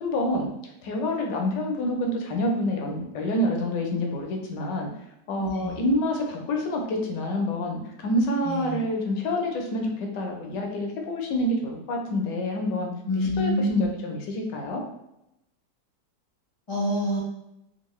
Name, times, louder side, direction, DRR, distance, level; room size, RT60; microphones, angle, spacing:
voice 1, 0.0-0.5 0.8-4.9 5.3-12.9 13.2-14.8, left 1 dB, 75° left, 1 dB, 1.2 m, -27 dB
voice 2, 5.4-5.8 8.4-8.8 13.1-13.9 16.7-17.2, left 1 dB, 25° left, -8 dB, 0.6 m, -26 dB
3.6 x 2.5 x 3.0 m, 0.86 s
omnidirectional pair, 2.0 m